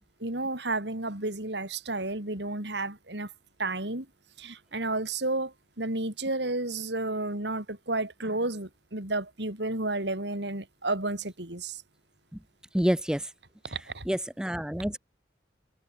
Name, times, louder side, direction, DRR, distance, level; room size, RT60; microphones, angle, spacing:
voice 1, 0.2-3.3 3.6-4.1 4.4-11.8 13.6-14.0, right 2 dB, 75° right, 4.4 m, -32 dB
voice 2, 12.7-13.3 14.1-15.0, equal, 5° right, 0.5 m, -27 dB
head